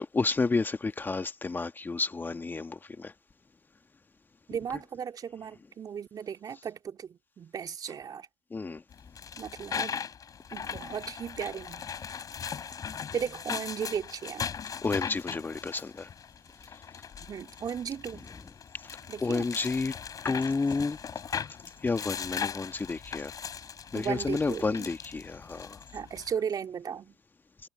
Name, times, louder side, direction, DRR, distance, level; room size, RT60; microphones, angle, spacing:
voice 1, 0.0-3.1 8.5-8.8 14.8-16.1 18.7-18.9 19.2-19.9 20.2-21.0 21.3-21.4 21.8-23.3 23.9-25.8, left 4 dB, 20° left, 1.4 m, -30 dB
voice 2, 4.5-8.3 9.4-10.0 10.5-12.1 13.1-14.5 17.2-18.3 19.1-19.5 23.9-24.9 25.9-27.1, right 7 dB, 35° right, 3.1 m, -36 dB
sound 1, 8.9-26.3, left 7 dB, 35° left, 4.0 m, -39 dB
hypercardioid pair, 90°, 11 cm